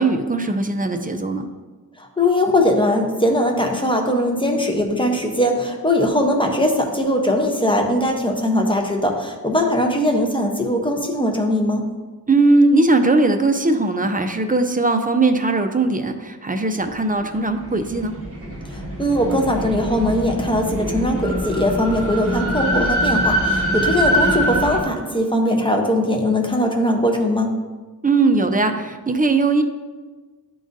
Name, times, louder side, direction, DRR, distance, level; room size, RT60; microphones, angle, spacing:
voice 1, 0.0-1.5 12.3-18.1 28.0-29.6, right 3 dB, 25° right, 6 dB, 0.5 m, -19 dB
voice 2, 2.0-11.9 18.7-27.5, left 1 dB, 15° left, 2 dB, 0.8 m, -20 dB
sound 1, 17.3-24.8, equal, 40° right, 1.3 m, -23 dB
10.5 x 3.8 x 2.6 m, 1.3 s
wide cardioid pair, 75°, 37 cm